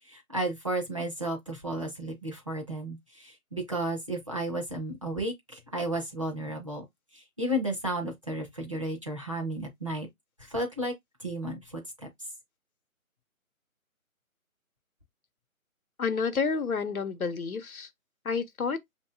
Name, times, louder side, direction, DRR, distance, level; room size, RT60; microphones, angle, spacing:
voice 1, 0.1-6.8 7.1-10.1 10.4-10.9 11.2-12.1, right 1 dB, 25° right, 0.6 m, -33 dB
voice 2, 16.0-17.9 18.2-18.8, left 5 dB, 85° left, 0.8 m, -29 dB
5.9 x 2.6 x 2.2 m
figure-of-eight pair, 155°, 42 cm